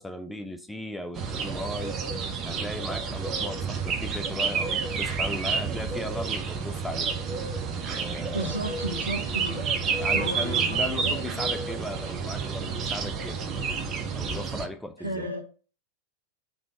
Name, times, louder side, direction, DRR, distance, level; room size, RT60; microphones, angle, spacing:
voice 1, 0.0-2.0 2.4-7.1 7.9-8.6 10.0-13.4 14.1-15.3, left 1 dB, 5° left, 0.5 m, -37 dB
sound 1, 1.1-14.7, right 5 dB, 30° right, 1.1 m, -30 dB
voice 2, 8.3-11.2 15.0-15.4, right 1 dB, 85° right, 0.9 m, -33 dB
5.4 x 3.7 x 5.6 m
figure-of-eight pair, 90°, 0 cm